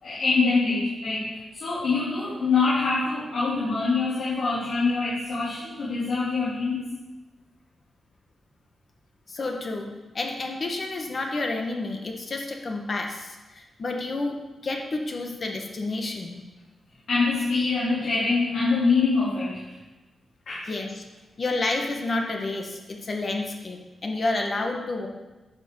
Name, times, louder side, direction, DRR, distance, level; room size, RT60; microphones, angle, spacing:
voice 1, 0.0-6.9 17.1-19.6 20.5-20.7, left 4 dB, 70° left, -10 dB, 3.7 m, -24 dB
voice 2, 9.3-9.9 10.1-14.4 14.6-16.4 20.6-21.0 21.4-25.1, left 2 dB, 40° left, 2 dB, 1.6 m, -30 dB
10.5 x 6.8 x 7.1 m, 1.1 s
wide cardioid pair, 130°, 0 cm